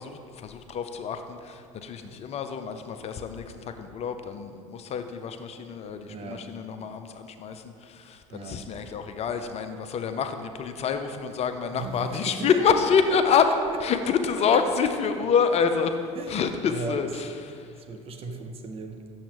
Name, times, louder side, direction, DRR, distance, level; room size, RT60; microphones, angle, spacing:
voice 1, 0.0-13.5 13.8-15.9 16.3-17.3 18.3-18.4, left 6 dB, 40° left, 8 dB, 0.5 m, -27 dB
voice 2, 6.1-6.5 8.3-8.6 11.7-12.6 13.1-13.4 16.1-17.1 17.4-17.5 17.8-19.0, right 3 dB, 35° right, 4 dB, 0.8 m, -37 dB
8.6 x 7.1 x 3.0 m, 2.2 s
hypercardioid pair, 70°, 17 cm